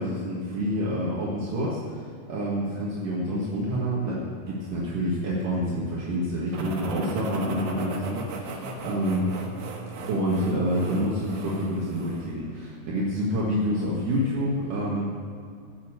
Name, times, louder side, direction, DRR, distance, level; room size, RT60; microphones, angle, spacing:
voice 1, 0.0-9.3 10.1-15.0, equal, 65° right, -6 dB, 3.4 m, -28 dB
sound 1, 6.5-12.3, right 2 dB, 90° right, 3.5 m, -37 dB
19.5 x 7.1 x 7.8 m, 2.2 s
omnidirectional pair, 4.2 m